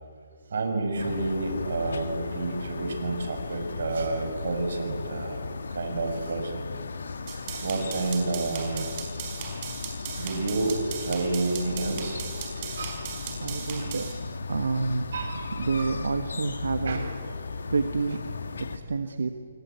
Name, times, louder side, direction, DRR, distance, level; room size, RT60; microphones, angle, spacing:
voice 1, 0.5-6.7 7.4-9.0 10.1-12.2 12.5-13.0 15.1-15.4 15.7-15.9 16.8-17.1, right 3 dB, 65° right, 5 dB, 6.2 m, -30 dB
sound 1, 1.0-18.8, left 4 dB, 80° left, 2.2 m, -36 dB
sound 2, 7.3-14.1, right 7 dB, 30° right, 4.7 m, -38 dB
voice 2, 13.4-14.2 14.5-15.1 15.6-17.0 17.7-18.2 18.6-19.3, right 4 dB, 90° right, 8 dB, 1.4 m, -28 dB
28.0 x 23.5 x 8.3 m, 2.1 s
hypercardioid pair, 165°, 0 cm